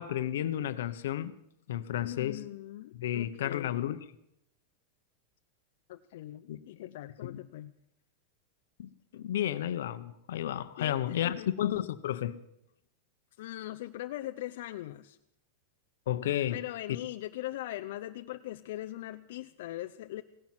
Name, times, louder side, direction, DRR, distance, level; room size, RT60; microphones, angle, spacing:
voice 1, 0.0-1.3 1.7-2.4 2.9-4.0 6.5-6.6 7.2-7.4 8.8-12.4 16.1-16.6, left 11 dB, 80° left, 1.0 m, -32 dB
voice 2, 2.0-3.8 5.9-7.7 10.8-11.5 13.4-15.2 16.5-20.2, left 15 dB, 60° left, 0.6 m, -41 dB
17.0 x 10.5 x 7.6 m
supercardioid pair, 175°, 0 cm